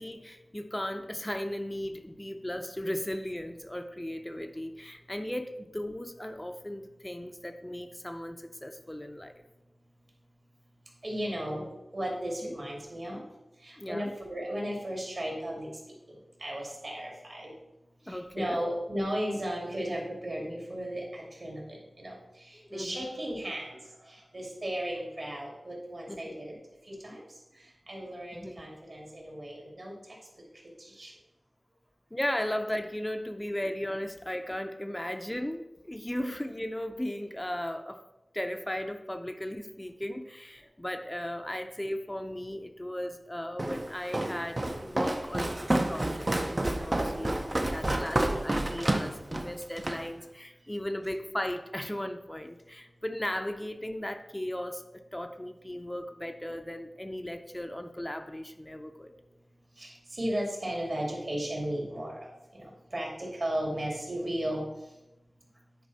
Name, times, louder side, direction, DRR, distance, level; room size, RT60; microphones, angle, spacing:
voice 1, 0.0-9.3 12.4-12.6 13.8-14.1 18.1-18.6 22.5-23.1 26.1-26.4 28.3-28.7 32.1-38.0 38.3-59.1, left 1 dB, 15° left, 6 dB, 0.6 m, -36 dB
voice 2, 11.0-11.6 11.9-13.2 13.6-15.7 16.4-17.5 18.1-22.1 22.4-23.8 24.1-26.6 26.9-27.2 27.9-29.9 31.0-31.1 48.2-48.5 59.8-62.2 62.5-62.6 62.9-64.6, equal, 55° right, -2 dB, 2.5 m, -35 dB
Walk footsteps, 43.6-50.1, right 1 dB, 35° right, 0.6 m, -29 dB
9.5 x 4.6 x 4.1 m, 0.97 s
wide cardioid pair, 80°, 0 cm